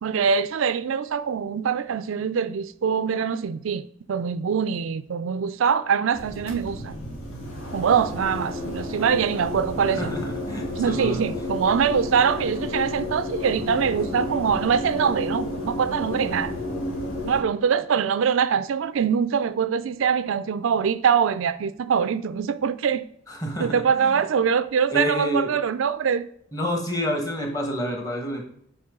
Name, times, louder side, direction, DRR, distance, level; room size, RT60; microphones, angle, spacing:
voice 1, 0.0-7.0 7.7-10.1 10.8-16.5 17.2-23.0 23.6-26.3, right 7 dB, 80° right, 0.4 m, -23 dB
sound 1, 6.1-17.4, left 1 dB, 85° left, 2.2 m, -32 dB
voice 2, 10.0-11.2 23.3-24.2 24.9-25.5 26.5-28.5, equal, 20° left, 1.4 m, -28 dB
8.5 x 5.0 x 3.7 m
head